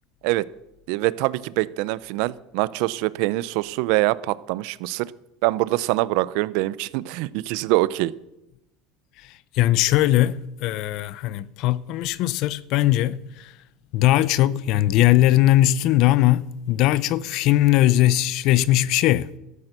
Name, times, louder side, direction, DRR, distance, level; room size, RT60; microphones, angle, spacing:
voice 1, 0.9-5.1 5.4-8.1, right 19 dB, 70° right, 0.6 m, -24 dB
voice 2, 9.2-13.5 13.9-19.3, left 14 dB, 60° left, 0.6 m, -20 dB
13.5 x 9.9 x 6.8 m
supercardioid pair, 120°, 0 cm